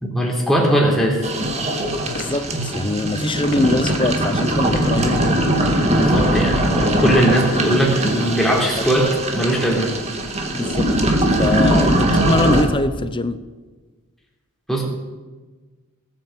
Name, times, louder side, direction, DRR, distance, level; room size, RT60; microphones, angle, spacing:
voice 1, 0.0-1.3 5.8-9.9 14.7-14.8, right 1 dB, ahead, -2 dB, 3.6 m, -19 dB
sound 1, 1.2-12.6, right 1 dB, 30° right, 2.1 m, -20 dB
sound 2, 2.1-2.4 3.4-3.7 4.7-4.9 6.0-6.4 7.3-7.7 8.8-9.1, left 1 dB, 45° left, 2.8 m, -35 dB
voice 2, 2.1-5.5 8.8-8.9 10.5-10.9 11.2-13.4, left 2 dB, 20° left, 12 dB, 0.7 m, -23 dB
19.0 x 9.0 x 7.7 m, 1.3 s
head